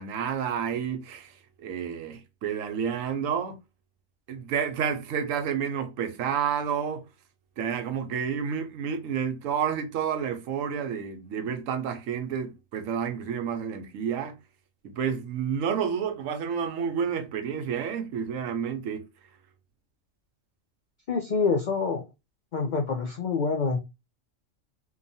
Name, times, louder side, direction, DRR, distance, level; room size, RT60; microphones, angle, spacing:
voice 1, 0.0-3.6 4.3-7.0 7.6-14.4 14.8-19.1, right 7 dB, 80° right, 0.9 m, -30 dB
voice 2, 21.1-22.0 22.5-23.8, left 4 dB, 70° left, 0.4 m, -26 dB
2.9 x 2.2 x 2.5 m
omnidirectional pair, 1.4 m